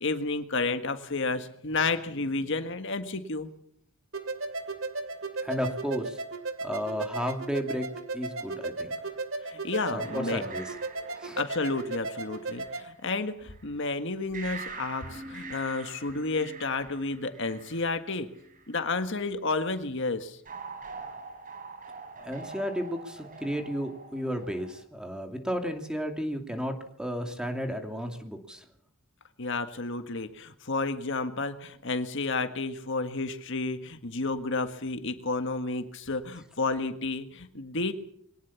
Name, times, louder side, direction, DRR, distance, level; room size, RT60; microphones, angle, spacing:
voice 1, 0.0-3.5 9.4-10.4 11.4-18.3 18.7-20.4 29.4-37.9, left 3 dB, 60° left, 8 dB, 1.7 m, -31 dB
sound 1, 4.1-12.9, right 3 dB, 70° right, 2.4 m, -36 dB
voice 2, 5.4-6.2 6.6-7.9 8.1-8.9 9.9-10.7 11.2-11.4 22.2-28.6, equal, 5° right, 5 dB, 2.6 m, -33 dB
sound 2, 10.0-13.6 14.3-18.8 20.5-24.8, right 4 dB, 40° right, 3.8 m, -44 dB
23.0 x 18.5 x 7.2 m, 0.66 s
head